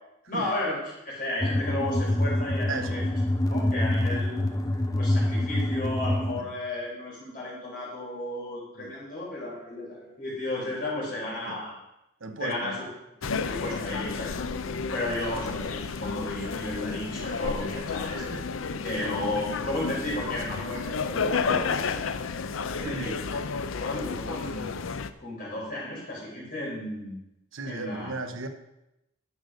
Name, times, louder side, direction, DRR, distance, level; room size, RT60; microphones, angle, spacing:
voice 1, 0.3-0.8 1.0-3.0 3.5-4.4 5.0-11.7 12.4-12.9 13.4-14.3 14.9-18.4 18.8-22.0 22.7-23.2 23.8-24.7 25.2-27.1 27.6-28.1, left 1 dB, 40° left, -5 dB, 5.0 m, -33 dB
sound 1, 1.4-6.4, left 1 dB, 15° left, 0.7 m, -26 dB
voice 2, 2.7-3.0 6.4-6.5 8.8-8.9 11.5-11.6 12.2-12.8 13.3-13.5 18.2-18.4 19.0-19.6 21.5-21.8 22.8-23.2 27.5-28.5, right 3 dB, 75° right, 7 dB, 1.0 m, -37 dB
sound 2, 13.2-25.1, left 5 dB, 75° left, 0.6 m, -31 dB
11.0 x 6.6 x 6.3 m, 0.89 s
head